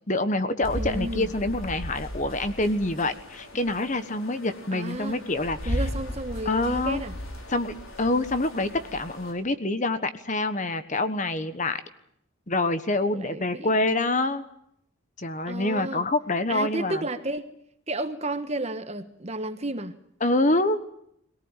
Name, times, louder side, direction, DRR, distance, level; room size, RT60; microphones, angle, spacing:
voice 1, 0.1-5.7 6.4-7.0 7.5-11.8 12.5-14.4 15.2-17.0 20.2-20.8, left 2 dB, 35° left, 11 dB, 1.2 m, -26 dB
sound 1, 0.6-9.3, equal, 70° left, 5.5 m, -36 dB
voice 2, 0.7-1.3 4.7-5.3 5.6-7.1 13.1-13.8 15.5-16.1 16.5-17.5 17.9-20.0, right 2 dB, 30° right, 9 dB, 1.3 m, -32 dB
22.5 x 18.0 x 9.0 m, 0.74 s
head